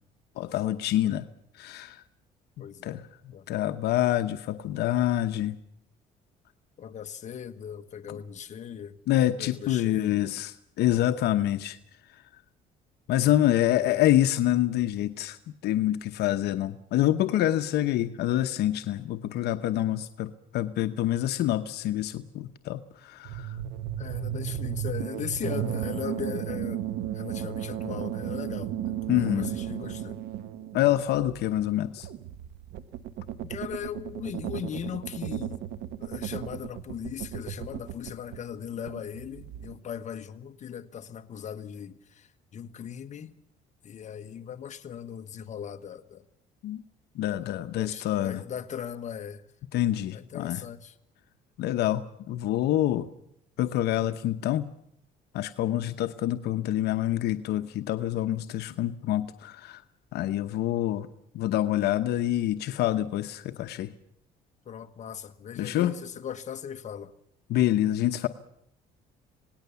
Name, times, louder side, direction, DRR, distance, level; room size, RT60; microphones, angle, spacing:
voice 1, 0.4-1.2 1.6-2.0 2.8-3.0 3.5-5.6 8.1-8.2 9.1-11.8 13.1-23.5 29.1-29.5 30.7-32.1 46.6-46.8 47.2-48.4 49.7-50.6 51.6-53.1 53.6-54.7 55.3-59.8 60.1-61.1 61.3-63.9 65.6-65.9 67.5-68.3, left 13 dB, 75° left, 9 dB, 1.0 m, -26 dB
voice 2, 2.6-3.0 3.3-3.4 6.8-9.0 9.4-10.2 13.6-14.0 24.0-26.8 27.1-30.2 33.4-35.6 36.0-43.3 43.8-46.2 47.3-49.4 50.1-51.0 64.6-67.1, left 8 dB, 45° left, 8 dB, 1.4 m, -38 dB
sound 1, 23.2-38.5 38.8-39.8, right 10 dB, 80° right, 1.2 m, -35 dB
26.5 x 18.5 x 7.0 m, 0.73 s
cardioid pair, 110°, 17 cm